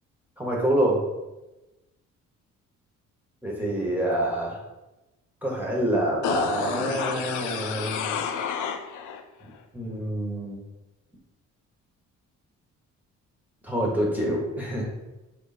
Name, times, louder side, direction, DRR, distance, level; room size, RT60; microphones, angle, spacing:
voice 1, 0.4-1.0 3.4-4.6 5.4-8.1 9.7-10.6 13.6-14.8, right 1 dB, 5° right, -3 dB, 1.2 m, -26 dB
sound 1, 6.2-9.2 9.6-9.7, left 7 dB, 75° left, 0.5 m, -30 dB
3.8 x 3.1 x 4.1 m, 1.0 s
cardioid pair, 90°, 30 cm